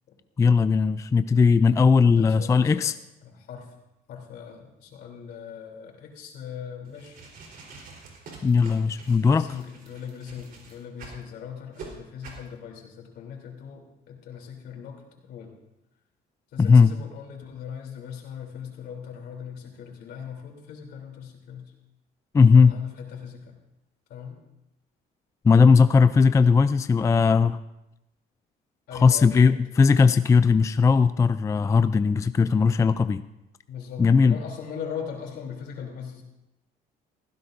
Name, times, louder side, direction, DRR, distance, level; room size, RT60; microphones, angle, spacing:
voice 1, 0.4-2.9 8.4-9.5 16.6-16.9 22.3-22.8 25.4-27.6 28.9-33.3 34.0-34.4, left 5 dB, 20° left, 12 dB, 0.3 m, -18 dB
voice 2, 2.0-2.9 3.2-3.7 4.1-7.2 9.2-15.6 16.5-21.7 22.5-23.5 24.1-24.4 28.9-29.6 33.7-36.2, left 7 dB, 75° left, 1 dB, 3.2 m, -39 dB
sound 1, 6.9-11.2 11.7-11.9 12.2-12.5, right 4 dB, 60° right, 3.9 m, -46 dB
16.5 x 15.5 x 2.6 m, 0.90 s
cardioid pair, 110°, 17 cm